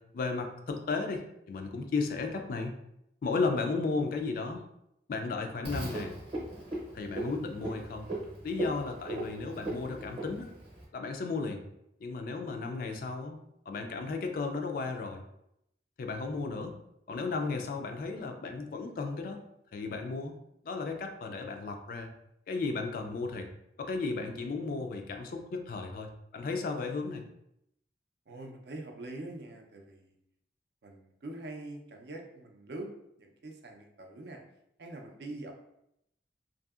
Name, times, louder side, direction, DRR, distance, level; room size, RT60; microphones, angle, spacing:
voice 1, 0.0-2.7 3.2-4.6 5.1-6.1 6.9-8.1 8.4-10.5 10.9-11.6 12.0-13.4 13.7-15.2 16.0-16.8 17.1-19.4 19.7-20.3 20.6-22.1 22.5-23.5 23.8-27.2, left 4 dB, 50° left, 5 dB, 0.3 m, -34 dB
Frog, 5.6-10.8, right 1 dB, 30° right, 0.7 m, -38 dB
voice 2, 28.3-30.1 30.8-32.9 33.2-34.4 34.8-35.5, right 2 dB, 60° right, 2 dB, 0.5 m, -44 dB
2.7 x 2.6 x 2.3 m, 0.80 s
head